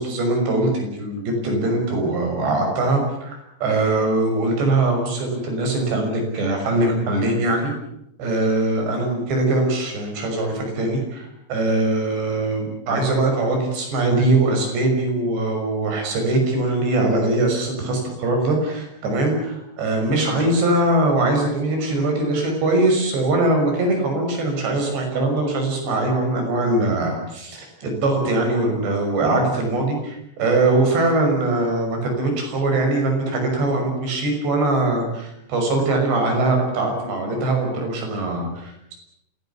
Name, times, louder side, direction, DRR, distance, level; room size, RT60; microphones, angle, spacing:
voice 1, 0.0-7.7 8.2-39.0, right 2 dB, 75° right, 3 dB, 8.2 m, -22 dB
27.5 x 17.5 x 8.4 m, 0.79 s
omnidirectional pair, 5.0 m